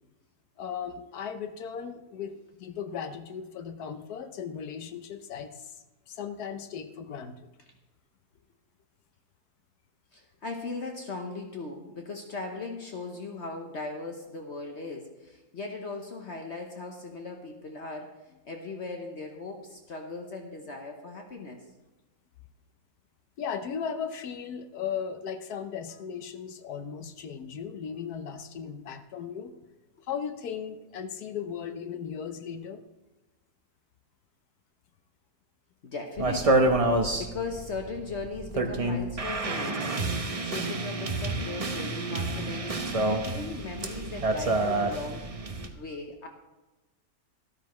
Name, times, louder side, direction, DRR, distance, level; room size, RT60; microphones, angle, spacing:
voice 1, 0.6-7.5 23.4-29.5 30.0-32.8, left 7 dB, 90° left, 8 dB, 1.3 m, -37 dB
voice 2, 10.1-18.2 18.4-21.6 35.8-36.7 37.2-40.0 40.4-45.3 45.8-46.3, left 3 dB, 50° left, 3 dB, 1.2 m, -38 dB
sound 1, 36.2-45.7, right 2 dB, 30° right, 0.7 m, -28 dB
13.0 x 12.5 x 3.1 m, 1.1 s
omnidirectional pair, 1.6 m